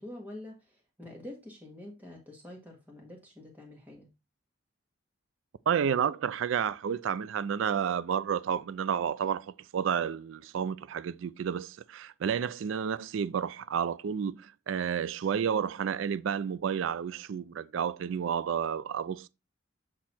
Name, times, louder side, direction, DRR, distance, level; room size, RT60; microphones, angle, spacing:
voice 1, 0.0-4.1, left 1 dB, 10° right, 1.5 m, -46 dB
voice 2, 5.7-19.3, right 7 dB, 75° right, 0.3 m, -31 dB
7.5 x 3.0 x 4.3 m
head